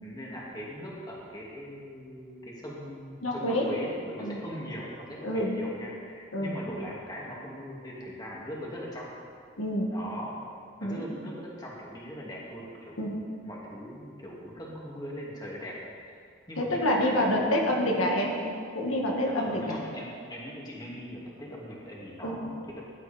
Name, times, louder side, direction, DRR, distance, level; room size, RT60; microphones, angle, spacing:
voice 1, 0.0-9.1 9.9-10.3 10.8-13.0 13.4-15.7 16.0-16.2 16.5-17.4 17.8-17.9 19.2-22.8, equal, 20° left, -4 dB, 2.4 m, -40 dB
voice 2, 3.2-3.7 4.2-4.4 5.2-5.5 6.3-6.5 9.6-9.9 10.8-11.1 13.0-13.2 16.6-18.4 18.8-19.8 22.2-22.4, left 1 dB, 85° left, 0 dB, 2.0 m, -27 dB
18.5 x 11.5 x 4.3 m, 2.3 s
head